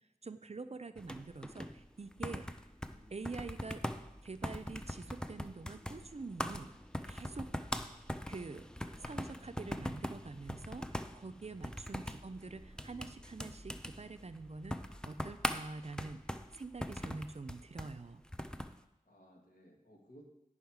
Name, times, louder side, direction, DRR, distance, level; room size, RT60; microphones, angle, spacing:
voice 1, 0.2-2.5 3.1-3.8 4.2-6.7 7.1-7.5 8.3-8.7 9.0-16.2 16.5-18.2, right 3 dB, 45° right, 10 dB, 0.5 m, -46 dB
sound 1, 1.0-18.8, equal, 5° left, 0.5 m, -42 dB
voice 2, 2.9-3.2 19.1-20.2, equal, 65° left, -1 dB, 2.0 m, -60 dB
10.5 x 5.7 x 4.7 m, 0.86 s
wide cardioid pair, 55°, 15 cm